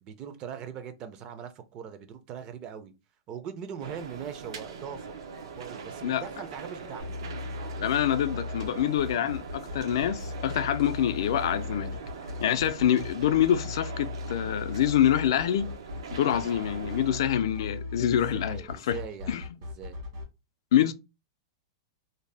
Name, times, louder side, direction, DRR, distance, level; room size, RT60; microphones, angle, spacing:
voice 1, 0.0-2.9 3.3-5.1 5.6-7.2 18.3-19.4 19.8-20.0, right 8 dB, 30° right, 0.4 m, -40 dB
sound 1, 3.8-17.2, right 5 dB, 80° right, 0.6 m, -42 dB
sound 2, 7.0-20.2, left 3 dB, 60° right, 1.3 m, -37 dB
voice 2, 7.8-12.0 12.4-15.7 16.1-19.0 19.3-19.4 20.7-20.9, left 10 dB, 70° left, 0.3 m, -26 dB
2.6 x 2.1 x 3.2 m
supercardioid pair, 145°, 3 cm